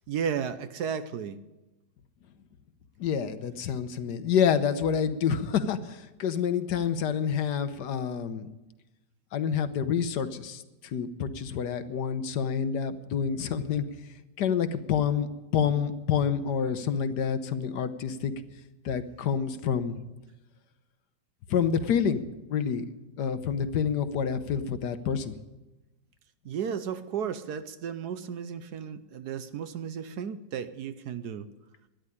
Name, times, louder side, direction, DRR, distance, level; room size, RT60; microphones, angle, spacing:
voice 1, 0.1-1.4 26.4-31.5, right 7 dB, 65° right, 12 dB, 1.2 m, -34 dB
voice 2, 3.0-8.5 9.3-13.8 14.4-15.3 15.5-18.3 18.8-20.0 21.5-25.3, left 7 dB, 70° left, 11 dB, 1.4 m, -28 dB
13.0 x 10.5 x 9.9 m, 1.1 s
omnidirectional pair, 2.0 m